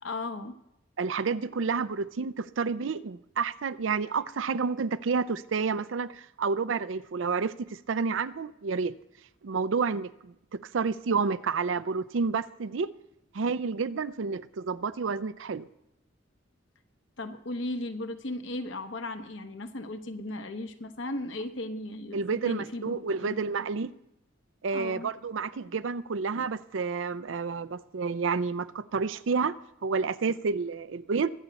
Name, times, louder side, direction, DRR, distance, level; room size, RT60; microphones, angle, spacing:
voice 1, 0.0-0.6 17.2-23.4 24.7-25.1, left 2 dB, 70° left, 1.1 m, -36 dB
voice 2, 1.0-8.9 9.4-12.9 13.3-15.7 22.1-23.9 24.6-31.3, right 5 dB, 70° right, 0.5 m, -30 dB
21.5 x 8.2 x 4.1 m
head